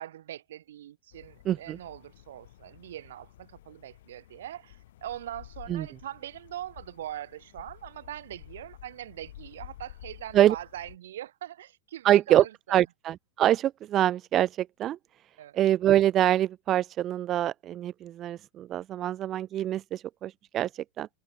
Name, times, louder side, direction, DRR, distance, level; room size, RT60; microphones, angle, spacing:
voice 1, 0.0-12.8 15.4-15.6, right 12 dB, 60° right, 6.6 m, -42 dB
sound 1, 1.1-11.0, left 14 dB, 55° left, 4.3 m, -51 dB
voice 2, 1.5-1.8 5.7-5.9 10.3-10.5 12.0-15.0 15.5-21.1, right 12 dB, 30° right, 0.8 m, -25 dB
figure-of-eight pair, 90°, 0 cm